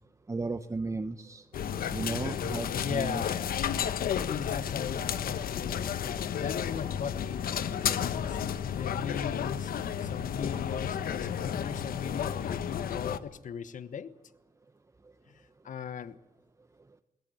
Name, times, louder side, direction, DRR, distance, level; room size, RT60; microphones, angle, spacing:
voice 1, 0.3-1.4 1.9-3.2, right 3 dB, 20° right, 1.0 m, -34 dB
sound 1, 1.5-13.2, left 8 dB, 75° left, 1.2 m, -32 dB
voice 2, 2.7-3.5 4.2-8.4 8.7-9.7 10.0-14.1 15.3-16.2, left 7 dB, 60° left, 1.2 m, -38 dB
21.5 x 18.0 x 9.4 m
cardioid pair, 95°, 15 cm